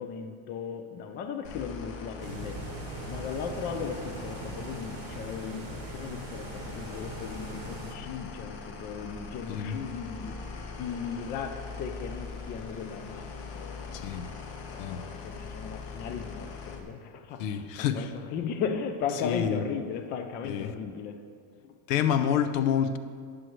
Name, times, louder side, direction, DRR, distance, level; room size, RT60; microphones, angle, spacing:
voice 1, 0.0-2.8 3.1-10.3 10.8-14.0 14.7-21.2 21.6-21.8, left 6 dB, 25° left, 6 dB, 0.4 m, -37 dB
sound 1, 1.4-16.8, left 4 dB, 45° left, 1.3 m, -41 dB
sound 2, 2.2-8.0, right 5 dB, 45° right, 0.9 m, -42 dB
voice 2, 9.5-9.8 13.9-14.2 14.8-15.0 17.4-18.1 19.1-19.7 20.4-20.7 21.9-23.0, left 8 dB, 75° left, 10 dB, 0.8 m, -28 dB
18.5 x 6.4 x 3.1 m, 2.1 s
cardioid pair, 165°, 40 cm